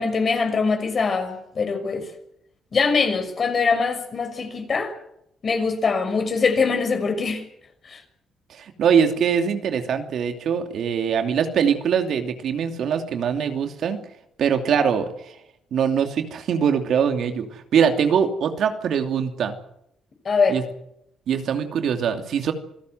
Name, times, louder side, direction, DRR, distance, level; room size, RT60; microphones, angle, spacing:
voice 1, 0.0-2.1 2.7-4.9 5.4-7.4 7.8-8.0 20.2-20.6, left 4 dB, 45° left, 7 dB, 6.1 m, -23 dB
voice 2, 8.5-14.0 14.4-15.3 15.7-19.5 20.5-20.6 21.3-22.5, right 7 dB, 70° right, 6 dB, 2.8 m, -22 dB
27.0 x 16.5 x 8.0 m, 0.77 s
cardioid pair, 90°, 0 cm